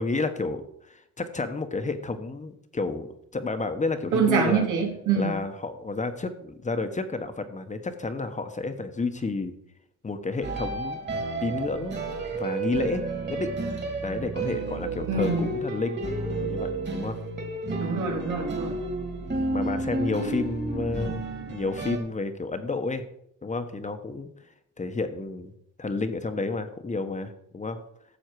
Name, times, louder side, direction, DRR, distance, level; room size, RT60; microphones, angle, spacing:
voice 1, 0.0-3.1 3.3-4.7 5.2-9.5 10.0-11.0 11.4-13.5 14.0-16.0 16.4-17.2 19.4-23.0 23.4-24.3 24.8-25.5 25.8-27.8, left 3 dB, 25° left, 8 dB, 1.1 m, -31 dB
voice 2, 4.1-5.3 15.1-15.4 17.8-18.8, right 5 dB, 85° right, 1 dB, 2.5 m, -25 dB
sound 1, 10.4-22.0, right 3 dB, 35° right, 2.4 m, -31 dB
12.0 x 7.1 x 4.7 m, 0.74 s
cardioid pair, 90°, 30 cm